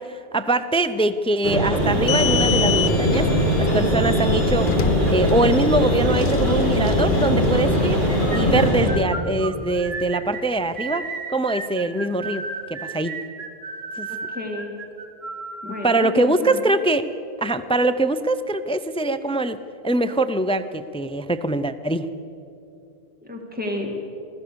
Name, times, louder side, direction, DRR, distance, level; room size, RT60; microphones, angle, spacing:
voice 1, 0.0-3.3 3.6-4.7 5.1-8.0 8.3-11.0 11.3-13.2 14.0-14.1 15.7-17.1 17.4-19.6 19.8-22.1, right 2 dB, 10° left, 12 dB, 0.4 m, -23 dB
sound 1, 1.4-8.9, equal, 70° right, 4.5 m, -21 dB
sound 2, 1.8-8.7, left 7 dB, 90° left, 1.1 m, -28 dB
sound 3, 8.1-16.1, right 3 dB, 90° right, 1.8 m, -33 dB
voice 2, 14.1-14.7 15.6-16.8 23.2-23.9, left 1 dB, 10° right, 1 dB, 2.2 m, -31 dB
24.0 x 16.0 x 6.8 m, 2.7 s
omnidirectional pair, 1.0 m